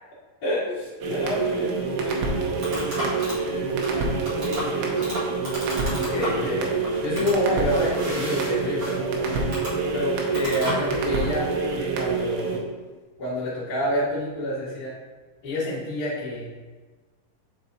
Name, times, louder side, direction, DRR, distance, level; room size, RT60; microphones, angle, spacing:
voice 1, 0.7-2.5 3.0-5.2, left 3 dB, 75° left, -4 dB, 2.0 m, -36 dB
sound 1, 1.0-12.6, right 4 dB, 80° right, 2.9 m, -26 dB
sound 2, 1.9-11.3, equal, 45° right, 1.7 m, -35 dB
voice 2, 5.9-9.5 9.9-12.6 13.2-14.9 15.4-16.5, left 1 dB, 60° left, -11 dB, 0.9 m, -28 dB
6.8 x 4.2 x 4.0 m, 1.3 s
omnidirectional pair, 5.3 m